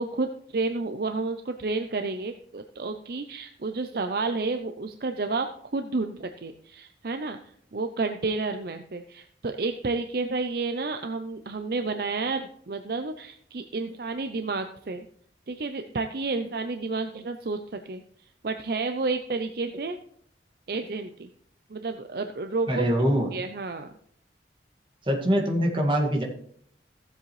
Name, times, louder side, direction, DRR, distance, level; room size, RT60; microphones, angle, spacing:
voice 1, 0.0-7.4 7.7-15.1 15.5-18.0 18.4-20.0 20.7-21.3 21.7-22.9 23.3-24.0, right 3 dB, 55° right, 7 dB, 0.5 m, -30 dB
voice 2, 22.7-23.3 25.0-26.2, equal, 30° right, 0 dB, 2.0 m, -23 dB
15.5 x 7.6 x 3.2 m, 0.65 s
head